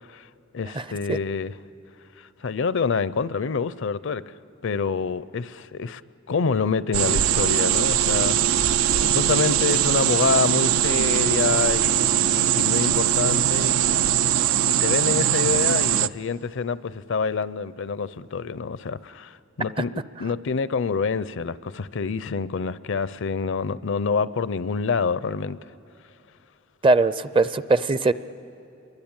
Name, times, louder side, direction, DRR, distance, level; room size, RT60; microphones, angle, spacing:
voice 1, 0.5-1.5 2.2-4.3 4.6-6.0 6.3-14.1 14.6-25.6, left 5 dB, 65° left, 0.5 m, -27 dB
sound 1, 6.9-16.1, right 10 dB, 85° right, 0.5 m, -21 dB
voice 2, 26.8-28.1, right 3 dB, 25° right, 0.5 m, -20 dB
28.0 x 23.0 x 8.9 m
head